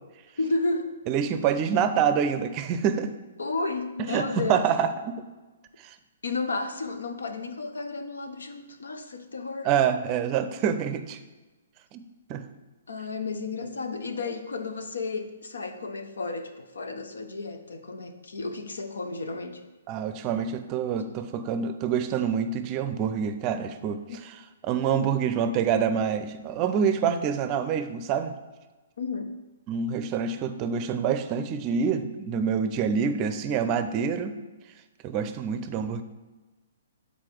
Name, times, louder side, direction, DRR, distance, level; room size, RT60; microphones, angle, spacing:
voice 1, 0.4-0.9 3.4-4.7 6.2-9.7 12.9-19.6 24.1-24.2 29.0-29.3, left 3 dB, 80° left, 7 dB, 0.8 m, -32 dB
voice 2, 1.1-3.1 4.0-5.2 5.8-5.9 9.6-11.2 11.9-12.0 12.3-12.4 19.9-24.3 24.6-28.3 29.7-34.3 35.0-36.0, right 7 dB, 30° right, 10 dB, 0.5 m, -26 dB
7.6 x 4.1 x 4.6 m, 1.2 s
hypercardioid pair, 130°, 0 cm